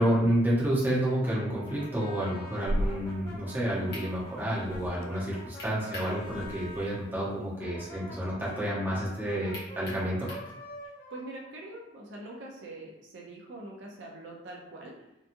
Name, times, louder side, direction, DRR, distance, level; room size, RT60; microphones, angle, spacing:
voice 1, 0.0-10.3, equal, 10° right, -8 dB, 0.7 m, -29 dB
Brass instrument, 1.2-6.9 7.5-12.3, left 1 dB, 25° left, 0.7 m, -46 dB
sound 1, 2.6-3.0 4.1-4.2 4.6-5.1 6.2-6.9, equal, 85° left, 0.3 m, -33 dB
sound 2, 3.9-4.1 5.6-6.2 6.5-6.6 9.5-10.5, left 1 dB, 55° left, 0.9 m, -42 dB
voice 2, 10.8-14.9, right 2 dB, 60° right, -2 dB, 0.5 m, -44 dB
2.8 x 2.3 x 2.5 m, 0.92 s
head